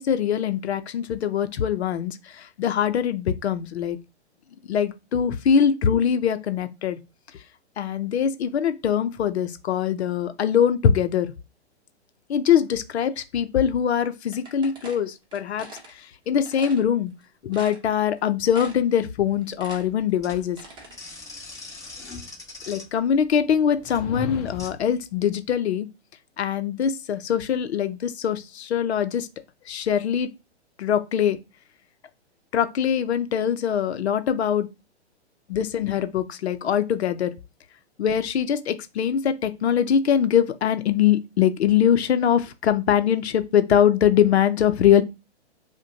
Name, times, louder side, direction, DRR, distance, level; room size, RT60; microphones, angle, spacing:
voice 1, 0.0-4.0 4.7-7.0 7.8-11.3 12.3-17.1 17.4-20.6 22.7-25.9 26.4-29.3 29.7-30.3 30.8-31.4 32.5-34.7 35.5-37.3 38.0-45.0, left 8 dB, 70° left, 0.6 m, -22 dB
sound 1, 14.3-15.9 16.4-16.8 17.2-17.3 17.5-18.2 18.5-19.0 19.3-21.0, right 2 dB, 15° right, 0.9 m, -42 dB
sound 2, 19.5-24.7, left 3 dB, 10° left, 1.2 m, -42 dB
sound 3, 23.8-24.9, left 4 dB, 35° left, 0.7 m, -34 dB
4.9 x 2.2 x 2.7 m
hypercardioid pair, 125°, 34 cm